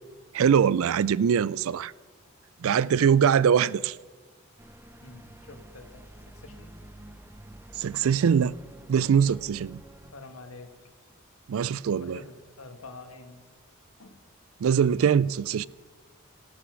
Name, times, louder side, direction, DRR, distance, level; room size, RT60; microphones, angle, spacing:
voice 1, 0.3-1.9 2.6-3.9 7.8-8.5 8.9-9.8 11.5-12.2 14.6-15.7, right 7 dB, 70° right, 0.3 m, -22 dB
voice 2, 2.7-3.1 5.0-6.7 10.0-10.9 12.0-13.4 14.0-14.2, left 3 dB, 75° left, 1.6 m, -47 dB
sound 1, 4.6-10.1, right 1 dB, 10° right, 0.6 m, -49 dB
14.0 x 12.0 x 6.2 m
head